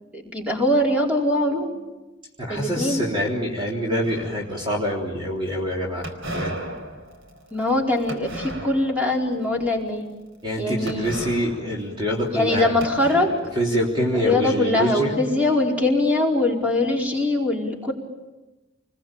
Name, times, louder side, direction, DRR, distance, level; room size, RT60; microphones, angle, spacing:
voice 1, 0.1-1.7 2.5-3.0 7.5-10.1 10.6-11.3 12.3-13.3 14.1-17.9, left 2 dB, 10° right, -1 dB, 4.8 m, -22 dB
voice 2, 2.4-6.5 10.4-12.7 13.6-15.2, equal, 25° right, -2 dB, 3.6 m, -25 dB
sound 1, 4.0-4.8 6.0-9.1 9.5-9.9 10.9-12.5 12.8-14.1, right 1 dB, 75° right, 4.4 m, -36 dB
29.0 x 21.5 x 9.0 m, 1.1 s
head